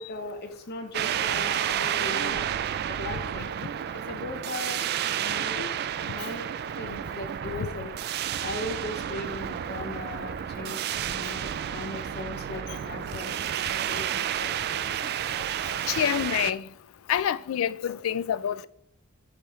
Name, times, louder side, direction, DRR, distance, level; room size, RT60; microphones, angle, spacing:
voice 1, 0.0-2.4 2.9-3.5 3.9-4.9 5.2-5.6 6.1-6.5 6.8-7.9 8.4-13.4 13.9-14.8 15.9-16.1, left 2 dB, 50° left, 0.6 m, -38 dB
sound 1, 0.9-16.5, right 10 dB, 50° right, 0.3 m, -31 dB
voice 2, 15.9-16.6 17.1-18.7, left 9 dB, 90° left, 0.3 m, -27 dB
10.0 x 3.3 x 3.0 m
head